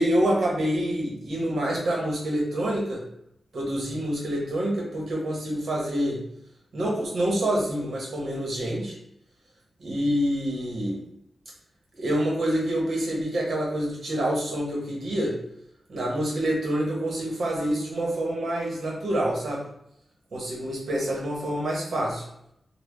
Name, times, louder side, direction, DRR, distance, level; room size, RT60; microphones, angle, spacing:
voice 1, 0.0-3.0 3.5-6.2 6.7-8.9 9.8-11.0 12.0-15.4 15.9-19.6 20.3-22.2, right 1 dB, 70° right, -3 dB, 1.2 m, -27 dB
3.1 x 2.3 x 3.6 m, 0.74 s
wide cardioid pair, 140°, 0 cm